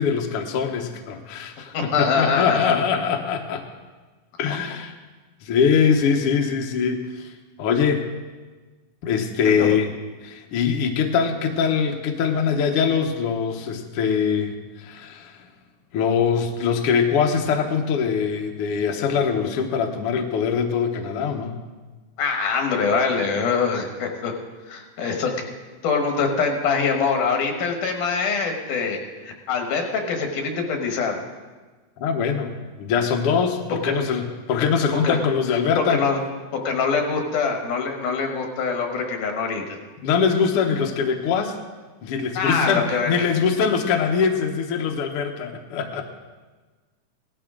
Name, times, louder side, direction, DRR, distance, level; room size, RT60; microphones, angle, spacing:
voice 1, 0.0-3.6 4.4-4.9 5.4-7.3 7.6-8.1 9.0-9.9 10.2-14.5 14.8-15.3 15.9-21.6 32.0-36.0 40.0-41.5 42.0-46.0, left 6 dB, 60° left, 3 dB, 1.6 m, -22 dB
voice 2, 1.7-2.7 4.5-4.6 9.6-9.8 22.2-24.3 24.7-25.3 25.8-29.0 29.2-31.2 33.8-34.0 35.0-35.2 35.5-36.2 36.5-39.8 42.4-43.3, left 5 dB, 90° left, 3 dB, 3.0 m, -24 dB
17.5 x 12.0 x 3.8 m, 1.3 s
omnidirectional pair, 3.6 m